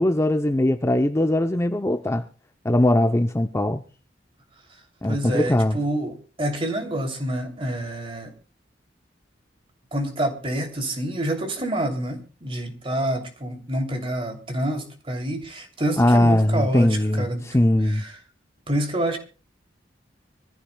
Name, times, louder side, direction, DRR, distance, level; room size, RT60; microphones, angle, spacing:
voice 1, 0.0-2.3 2.6-3.8 5.0-5.8 16.0-17.2 17.5-18.0, left 1 dB, 15° left, 0.6 m, -20 dB
voice 2, 5.1-8.3 9.9-17.5 17.8-18.2 18.7-19.2, right 1 dB, 30° right, 2.9 m, -27 dB
25.5 x 14.5 x 2.3 m
head